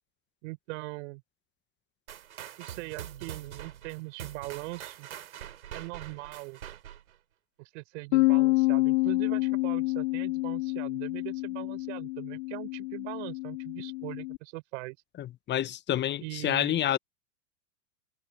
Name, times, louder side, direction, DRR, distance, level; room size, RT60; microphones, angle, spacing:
voice 1, 0.4-1.2 2.6-5.1 5.7-6.6 7.6-15.0 16.2-16.9, right 26 dB, 60° right, 5.6 m, -41 dB
sound 1, 2.1-7.2, right 10 dB, 80° right, 3.8 m, -44 dB
Bass guitar, 8.1-14.4, left 22 dB, 60° left, 3.3 m, -28 dB
voice 2, 15.2-17.0, left 11 dB, 25° left, 1.0 m, -28 dB
hypercardioid pair, 100°, 41 cm